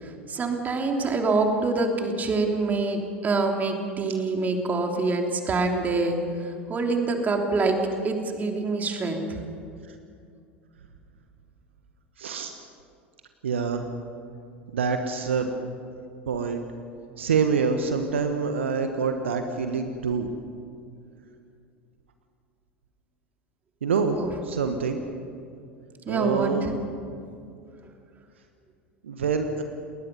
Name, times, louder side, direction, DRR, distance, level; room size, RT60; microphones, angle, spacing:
voice 1, 0.0-7.8 8.0-9.4 24.1-24.3 26.1-26.7, right 3 dB, 25° right, 3 dB, 3.1 m, -26 dB
voice 2, 12.2-12.5 13.4-13.8 14.7-15.5 16.3-16.6 17.2-20.3 23.8-24.2 24.4-25.0 26.1-26.7 29.0-29.6, right 5 dB, 70° right, 7 dB, 1.4 m, -26 dB
30.0 x 20.5 x 5.5 m, 2.4 s
figure-of-eight pair, 80°, 7 cm